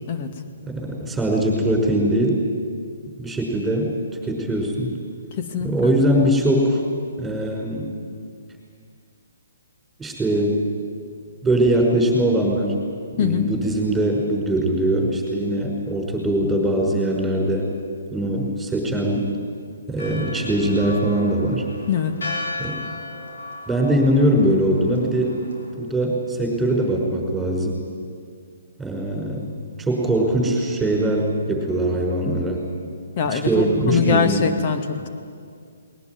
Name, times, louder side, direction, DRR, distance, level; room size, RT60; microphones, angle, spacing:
voice 1, 0.6-2.4 3.2-3.9 4.2-4.9 5.6-6.8 7.2-7.9 10.0-10.6 11.4-12.8 13.2-17.7 18.1-19.3 19.9-21.6 22.6-22.9 23.7-25.4 25.8-27.8 28.8-29.5 29.8-32.7 33.3-34.5, right 1 dB, 5° right, 0 dB, 5.6 m, -21 dB
voice 2, 5.4-5.9 13.2-13.5 21.9-22.1 33.2-35.1, left 6 dB, 40° left, 7 dB, 2.3 m, -23 dB
Church bell, 20.0-25.7, left 2 dB, 70° left, 5.3 m, -35 dB
20.5 x 19.5 x 9.6 m, 2.3 s
figure-of-eight pair, 135°, 0 cm